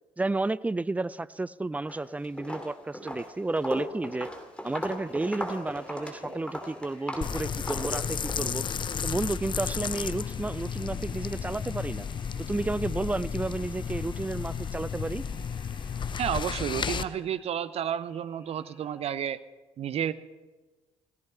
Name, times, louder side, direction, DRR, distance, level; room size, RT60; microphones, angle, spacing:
voice 1, 0.2-4.3 4.6-8.6 9.0-12.1 12.5-15.3, right 2 dB, 10° right, 19 dB, 0.5 m, -32 dB
Walk footsteps, 1.7-2.1 2.4-8.4, left 1 dB, 5° left, 3.1 m, -37 dB
sound 1, 4.6-19.2, left 1 dB, 75° left, 6.9 m, -56 dB
sound 2, 7.2-17.0, left 7 dB, 35° left, 0.7 m, -33 dB
voice 2, 16.2-19.4 19.8-20.1, right 9 dB, 45° right, 15 dB, 0.8 m, -31 dB
16.5 x 15.0 x 5.6 m, 1.2 s
figure-of-eight pair, 50°, 14 cm